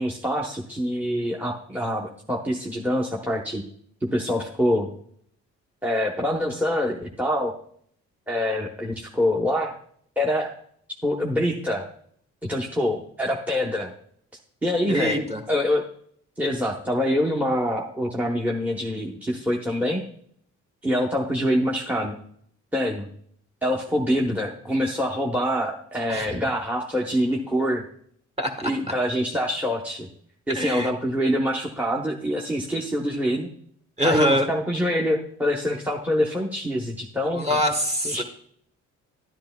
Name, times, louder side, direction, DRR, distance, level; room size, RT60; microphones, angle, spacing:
voice 1, 0.0-3.6 4.0-4.9 5.8-7.5 8.3-9.7 10.2-10.5 11.0-11.9 12.4-13.9 14.6-15.8 16.4-20.0 20.8-22.1 22.7-23.1 23.6-27.8 28.6-30.1 30.5-33.5 34.0-37.5 38.0-38.2, equal, 5° right, 0 dB, 0.9 m, -25 dB
voice 2, 14.9-15.4 26.1-26.4 28.4-28.7 30.5-30.9 34.0-34.5 37.3-38.2, equal, 20° right, 4 dB, 1.4 m, -24 dB
11.0 x 10.5 x 2.3 m, 0.64 s
cardioid pair, 90°, 30 cm